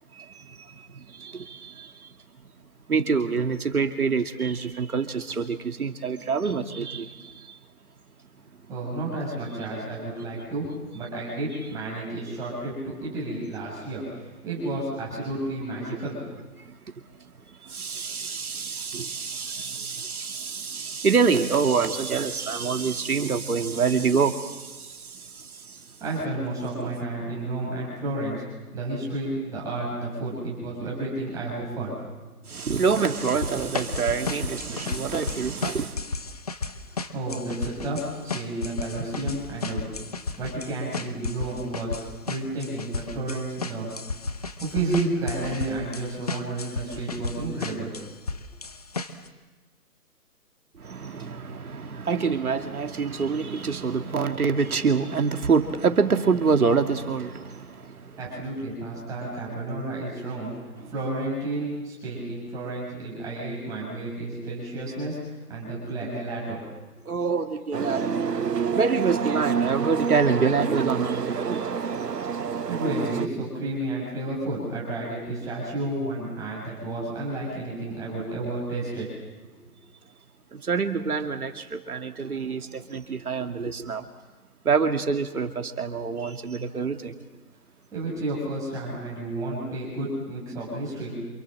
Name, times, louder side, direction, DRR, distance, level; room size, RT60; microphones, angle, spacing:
voice 1, 0.1-2.1 2.9-7.6 15.8-16.0 16.6-26.0 32.4-36.0 50.7-58.2 60.4-60.5 60.8-60.9 67.1-68.2 68.6-71.7 80.5-84.1 84.6-87.1, right 5 dB, 65° right, 2.5 m, -26 dB
voice 2, 8.7-16.2 26.0-28.4 28.7-32.0 37.1-39.9 40.4-42.0 42.3-43.9 44.6-47.9 58.2-60.5 60.9-65.2 65.5-66.6 72.7-79.1 87.9-91.1, right 2 dB, 5° right, 6.6 m, -31 dB
sound 1, 33.2-49.3, left 4 dB, 25° left, 1.0 m, -33 dB
sound 2, 67.7-73.3, right 6 dB, 90° right, 1.5 m, -28 dB
28.0 x 27.5 x 7.7 m
hypercardioid pair, 170°, 47 cm